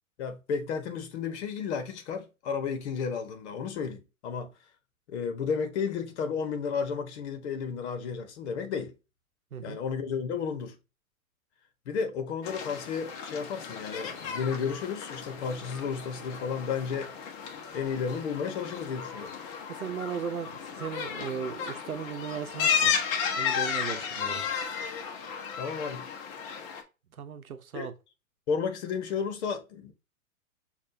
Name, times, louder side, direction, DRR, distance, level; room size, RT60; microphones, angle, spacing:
voice 1, 0.2-4.5 5.1-8.9 9.6-10.8 11.9-17.1 17.7-19.3 23.9-24.0 25.6-26.0 27.7-27.9 28.5-29.9, left 6 dB, 50° left, 1.2 m, -32 dB
sound 1, 12.4-26.8, left 7 dB, 30° left, 1.0 m, -34 dB
voice 2, 19.7-24.4 26.6-26.7 27.1-27.9, right 7 dB, 80° right, 0.8 m, -37 dB
6.5 x 2.6 x 2.7 m
figure-of-eight pair, 105°, 42 cm